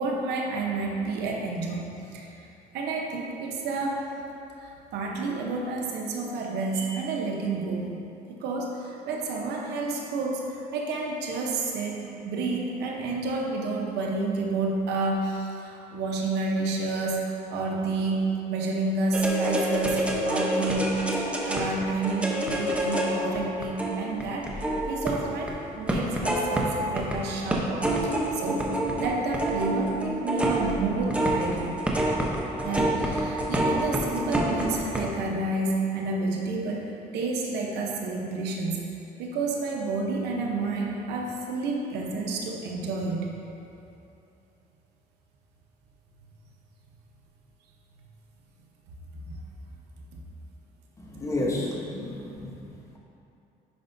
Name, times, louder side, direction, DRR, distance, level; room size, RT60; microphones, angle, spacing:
voice 1, 0.0-1.9 2.1-2.3 2.7-4.1 4.6-7.9 8.3-20.9 21.4-31.8 32.6-38.9 39.2-43.3 49.1-49.4 50.1-50.2, right 3 dB, 80° right, 0 dB, 0.9 m, -30 dB
sound 1, 19.1-25.5 25.9-27.2 27.5-35.0, right 1 dB, 5° right, 0.8 m, -27 dB
voice 2, 51.0-53.0, left 1 dB, 15° left, -3 dB, 1.1 m, -32 dB
9.4 x 5.3 x 2.7 m, 2.8 s
cardioid pair, 110°, 17 cm